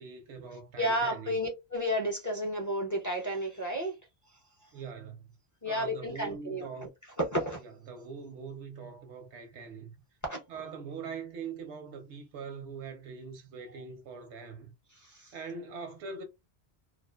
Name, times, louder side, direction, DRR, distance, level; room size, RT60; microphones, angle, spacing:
voice 1, 0.0-1.4 4.7-5.2 5.6-6.9 7.6-9.9 10.5-14.7 15.3-16.2, right 5 dB, 85° right, 0.9 m, -42 dB
voice 2, 0.8-3.9 5.6-6.7 7.3-7.6 10.2-10.4 15.2-15.3, equal, 30° left, 0.4 m, -31 dB
2.5 x 2.3 x 2.2 m
omnidirectional pair, 1.2 m